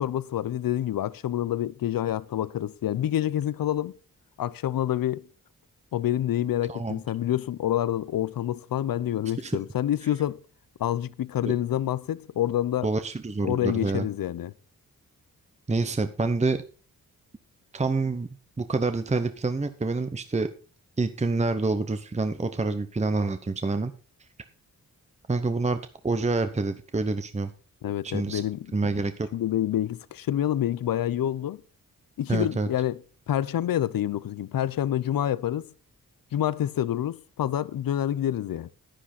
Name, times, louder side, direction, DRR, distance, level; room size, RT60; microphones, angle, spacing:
voice 1, 0.0-3.9 4.4-5.3 5.9-10.4 10.8-12.9 13.4-14.5 27.8-28.8 29.3-31.6 32.2-33.0 33.3-35.7 36.3-38.7, left 11 dB, 80° left, 0.6 m, -27 dB
voice 2, 6.7-7.0 9.4-9.6 12.8-14.1 15.7-16.6 17.7-18.3 18.6-20.5 21.0-23.9 25.3-25.8 26.0-27.5 28.0-28.4 28.7-29.3 32.3-32.7, right 3 dB, 20° right, 0.8 m, -27 dB
10.0 x 10.0 x 4.3 m
cardioid pair, 85°, 34 cm